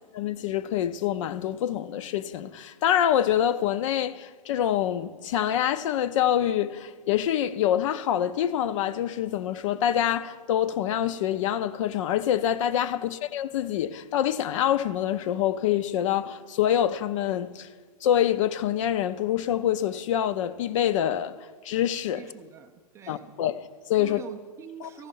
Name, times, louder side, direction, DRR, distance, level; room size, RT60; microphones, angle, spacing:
voice 1, 0.1-17.7 18.0-22.3 23.1-24.2 24.8-25.1, left 10 dB, 50° left, 0.4 m, -26 dB
voice 2, 22.1-23.3 24.0-25.1, right 7 dB, 15° right, 0.3 m, -45 dB
14.0 x 5.4 x 5.3 m
hypercardioid pair, 130°, 21 cm